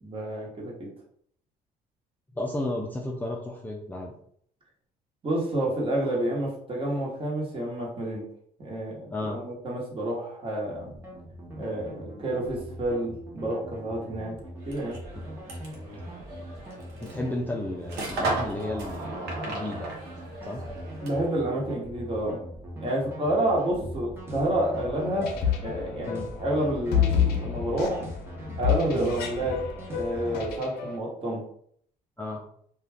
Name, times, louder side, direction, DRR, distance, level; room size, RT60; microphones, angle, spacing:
voice 1, 0.0-0.9 5.2-8.3 8.6-10.9 11.6-14.3 14.7-15.0 21.0-22.4 22.8-25.3 25.6-28.1 28.6-29.6 29.9-31.4, right 1 dB, 35° right, -3 dB, 1.1 m, -29 dB
voice 2, 2.4-4.1 9.1-9.4 17.0-19.2 19.4-19.9 20.4-20.7 26.1-26.3 28.9-29.1 32.2-32.4, left 2 dB, 10° left, -1 dB, 0.4 m, -33 dB
sound 1, 10.7-30.5, equal, 15° right, 0.8 m, -41 dB
sound 2, 14.6-21.4, right 2 dB, 85° right, 0.8 m, -36 dB
sound 3, 24.9-31.0, left 8 dB, 85° left, 0.5 m, -29 dB
2.3 x 2.3 x 3.4 m, 0.64 s
cardioid pair, 95°, 16 cm